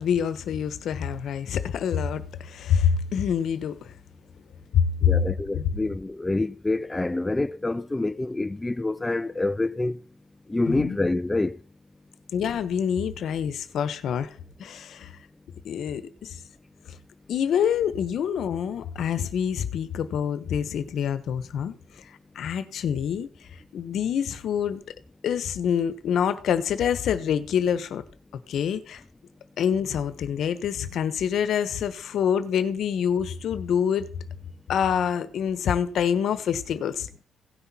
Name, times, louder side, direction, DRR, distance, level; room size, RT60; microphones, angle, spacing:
voice 1, 0.0-3.9 4.7-5.1 5.5-5.7 10.7-11.0 12.3-15.2 15.6-16.4 17.3-22.0 22.3-24.8 25.2-28.0 28.5-29.0 29.6-34.1 34.7-37.1, left 8 dB, 70° left, 1.1 m, -26 dB
voice 2, 5.0-10.0 10.5-11.6, left 2 dB, 15° left, 0.4 m, -27 dB
17.0 x 5.9 x 4.2 m
cardioid pair, 90°, 0 cm